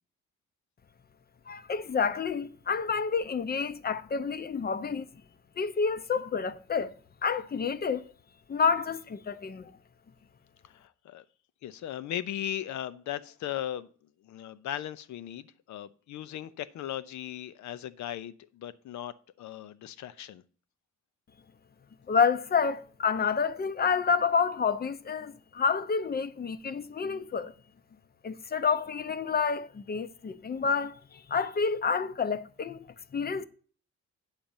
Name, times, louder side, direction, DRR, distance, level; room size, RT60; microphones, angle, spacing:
voice 1, 1.5-5.1 5.6-7.0 7.2-8.1 8.5-9.7 22.1-27.5 28.2-32.8 33.1-33.4, left 5 dB, 30° left, 0.7 m, -29 dB
voice 2, 10.6-11.2 11.6-13.9 14.2-20.4, left 11 dB, 70° left, 0.7 m, -38 dB
9.0 x 3.8 x 7.1 m
cardioid pair, 90°, 30 cm